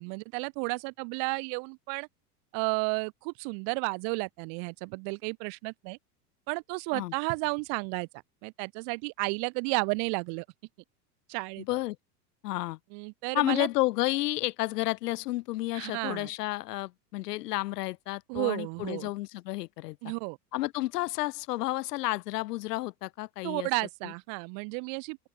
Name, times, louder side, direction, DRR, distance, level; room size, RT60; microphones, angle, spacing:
voice 1, 0.0-2.1 2.5-6.0 6.5-8.1 8.4-10.5 11.3-11.6 12.9-13.7 15.7-16.3 18.3-19.1 20.0-20.4 23.4-25.3, right 40 dB or more, 40° right, 0.5 m, -32 dB
voice 2, 11.6-12.0 12.4-12.8 13.3-20.0 20.5-23.7 24.0-24.1, left 18 dB, 80° left, 0.8 m, -31 dB
open air
hypercardioid pair, 115°, 47 cm